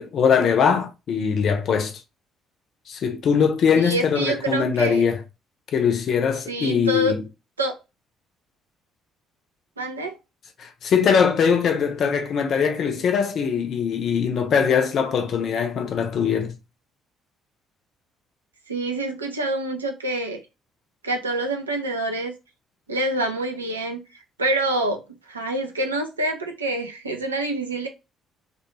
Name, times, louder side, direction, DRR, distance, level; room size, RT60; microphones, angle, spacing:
voice 1, 0.0-1.9 2.9-5.2 5.7-7.2 10.6-16.6, left 6 dB, 50° left, 0.5 m, -21 dB
voice 2, 3.7-5.0 6.5-7.1 7.6-7.7 9.8-10.2 18.7-20.4 21.0-22.3 22.9-24.0 24.4-27.9, right 2 dB, 85° right, 0.4 m, -26 dB
2.4 x 2.3 x 3.0 m
figure-of-eight pair, 50°, 0 cm